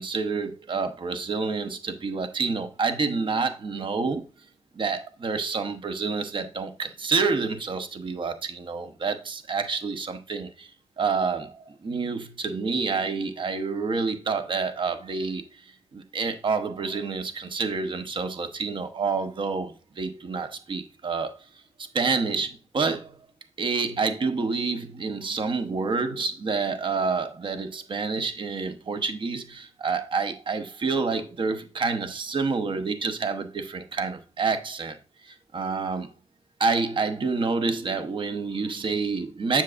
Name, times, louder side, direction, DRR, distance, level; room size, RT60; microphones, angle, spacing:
voice 1, 0.0-4.2 4.8-10.7 11.0-15.4 15.9-21.3 21.9-23.1 23.6-35.0 35.3-36.1 36.6-39.6, right 4 dB, 45° right, 0.9 m, -28 dB
7.4 x 7.2 x 2.5 m
cardioid pair, 95°, 11 cm